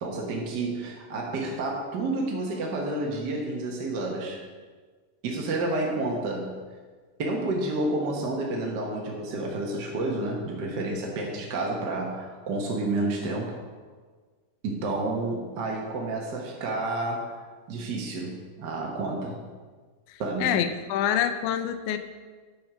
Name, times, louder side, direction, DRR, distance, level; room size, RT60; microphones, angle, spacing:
voice 1, 0.0-4.4 5.2-6.6 7.2-13.5 14.6-17.4 17.7-19.4 20.2-20.6, right 2 dB, 55° right, -1 dB, 1.2 m, -30 dB
voice 2, 20.1-22.0, left 9 dB, 85° left, 8 dB, 2.0 m, -27 dB
8.8 x 5.2 x 6.1 m, 1.4 s
omnidirectional pair, 3.4 m